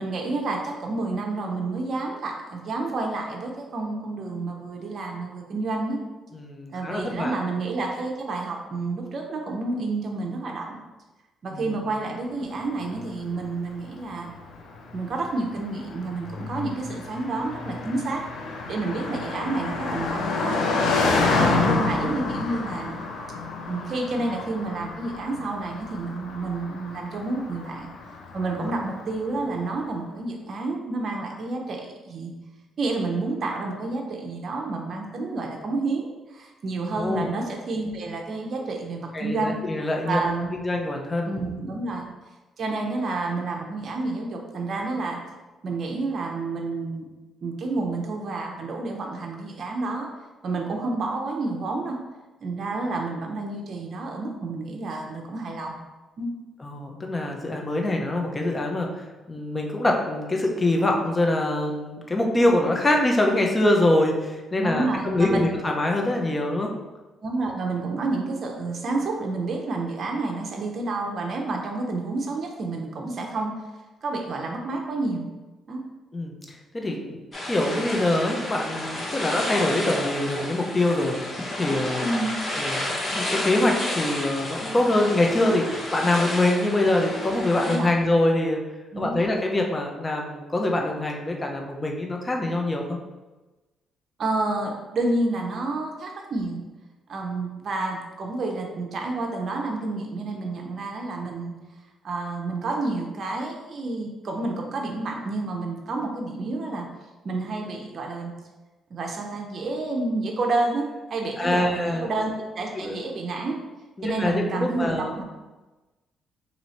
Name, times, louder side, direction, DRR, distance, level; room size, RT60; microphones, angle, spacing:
voice 1, 0.0-6.0 6.7-10.8 11.4-14.3 14.9-18.2 18.7-20.6 21.3-23.0 23.7-27.9 28.3-32.3 32.8-39.6 40.1-40.6 41.2-42.1 42.6-45.2 45.6-47.1 47.4-50.1 50.4-52.0 52.4-55.7 56.2-56.3 64.5-65.4 67.2-73.5 74.0-75.3 75.7-75.8 82.0-82.4 87.6-88.1 88.9-89.3 94.2-96.6 97.1-101.5 102.0-106.9 107.2-108.3 108.9-113.6 114.0-115.2, right 3 dB, 55° right, 1 dB, 0.6 m, -29 dB
voice 2, 6.3-7.4 11.5-11.8 28.6-28.7 37.0-37.3 39.1-40.2 40.5-41.6 56.6-66.7 76.1-77.1 77.4-82.1 82.6-88.6 89.0-93.0 111.4-112.1 112.8-113.0 114.0-115.1, left 1 dB, 25° left, 1 dB, 0.7 m, -24 dB
Car passing by, 12.9-29.4, left 3 dB, 80° left, 0.5 m, -29 dB
sound 1, 77.3-87.8, left 1 dB, 40° left, 1.1 m, -31 dB
3.0 x 2.7 x 4.1 m, 1.2 s
cardioid pair, 90°, 0 cm